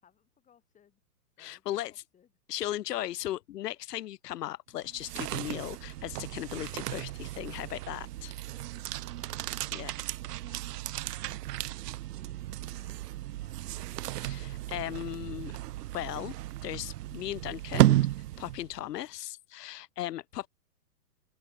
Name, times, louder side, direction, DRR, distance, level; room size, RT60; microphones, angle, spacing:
voice 1, 0.0-1.0 1.4-2.3 8.7-8.9 9.2-13.8, left 8 dB, 15° left, 4.1 m, -66 dB
voice 2, 1.4-1.9 2.5-8.3 9.7-10.0 14.2-15.5 15.9-16.4 16.6-18.0 18.4-20.5, left 13 dB, 80° left, 0.7 m, -37 dB
sound 1, 4.8-18.9, right 15 dB, 75° right, 0.6 m, -33 dB
open air
hypercardioid pair, 145°, 48 cm